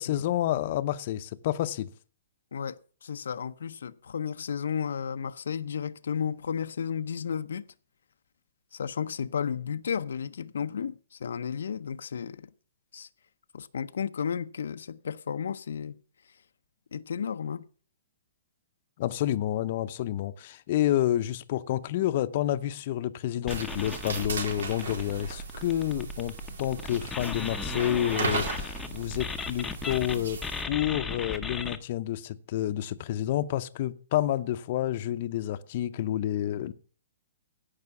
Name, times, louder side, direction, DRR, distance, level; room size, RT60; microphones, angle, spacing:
voice 1, 0.0-1.9 19.0-36.7, left 12 dB, 40° left, 0.7 m, -29 dB
voice 2, 2.5-7.7 8.7-12.5 12.9-13.1 13.5-16.0 16.9-17.6, left 7 dB, 80° left, 0.6 m, -33 dB
sound 1, 23.4-30.2 30.4-31.8, left 4 dB, 5° left, 0.8 m, -36 dB
sound 2, 23.5-30.6, right 4 dB, 80° right, 4.2 m, -36 dB
16.5 x 5.7 x 6.9 m
hypercardioid pair, 165°, 0 cm